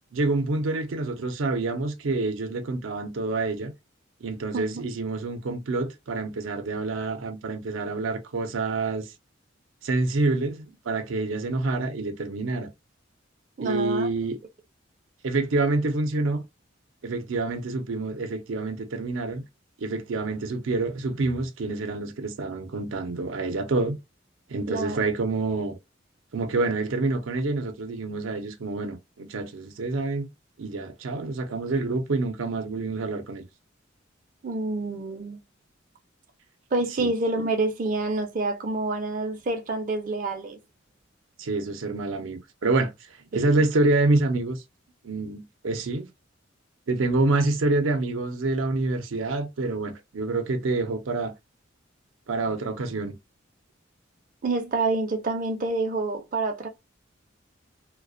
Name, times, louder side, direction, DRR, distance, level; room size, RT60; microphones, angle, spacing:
voice 1, 0.1-3.7 4.2-9.1 9.8-12.7 13.6-14.4 15.2-16.4 17.0-19.4 19.8-24.0 24.5-25.8 26.3-30.3 30.6-33.4 37.0-37.1 41.4-42.9 43.3-44.6 45.0-46.1 46.9-51.3 52.3-53.2, right 3 dB, 90° right, 0.5 m, -27 dB
voice 2, 13.6-14.1 24.7-25.0 34.4-35.4 36.7-40.6 43.3-43.5 54.4-56.7, right 3 dB, 45° right, 0.4 m, -27 dB
2.3 x 2.1 x 2.5 m
head